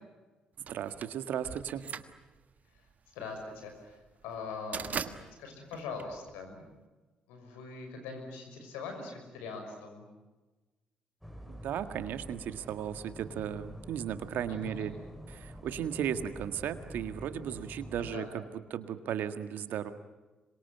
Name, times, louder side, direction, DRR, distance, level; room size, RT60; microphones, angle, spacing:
sound 1, 0.7-6.8, right 6 dB, 55° right, 1.5 m, -41 dB
voice 1, 0.7-2.0 11.5-14.9 15.3-18.4 18.7-19.9, right 9 dB, 70° right, 10 dB, 1.8 m, -36 dB
voice 2, 3.1-6.6 7.3-10.0 14.5-14.9 18.0-18.3, left 4 dB, 85° left, 4 dB, 6.3 m, -42 dB
sound 2, 11.2-18.2, equal, ahead, 4.2 m, -47 dB
26.0 x 22.5 x 9.3 m, 1.2 s
hypercardioid pair, 50°, 3 cm